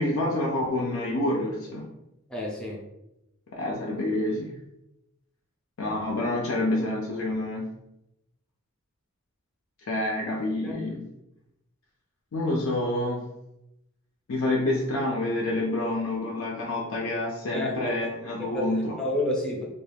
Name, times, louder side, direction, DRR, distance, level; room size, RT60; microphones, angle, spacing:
voice 1, 0.0-1.9 3.5-4.5 5.8-7.7 9.8-11.1 12.3-13.2 14.3-19.0, left 1 dB, 65° left, -2 dB, 0.4 m, -28 dB
voice 2, 2.3-2.8 10.6-10.9 17.5-18.0 18.5-19.7, left 1 dB, 5° left, -4 dB, 0.6 m, -30 dB
2.4 x 2.3 x 3.3 m, 0.89 s
head